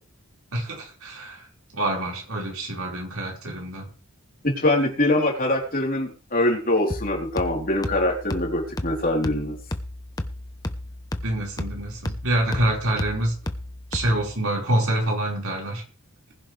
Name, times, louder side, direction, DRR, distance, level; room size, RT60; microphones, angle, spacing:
voice 1, 0.5-1.4 1.7-3.9 11.2-13.3 13.9-15.8, right 1 dB, 75° right, -1 dB, 5.3 m, -26 dB
voice 2, 4.4-9.6, left 1 dB, 40° left, 0 dB, 4.0 m, -23 dB
sound 1, 6.9-14.4, left 1 dB, 15° left, 0.9 m, -33 dB
20.0 x 11.0 x 3.5 m, 0.38 s
head